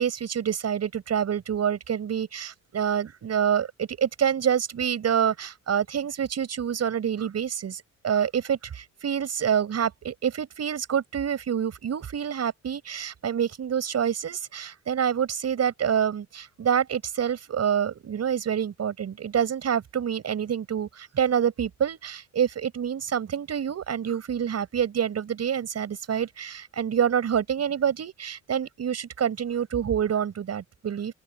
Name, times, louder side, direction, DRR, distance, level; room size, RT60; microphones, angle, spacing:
voice 1, 0.0-31.1, right 8 dB, 55° right, 7.9 m, -27 dB
open air
cardioid pair, 90°, 30 cm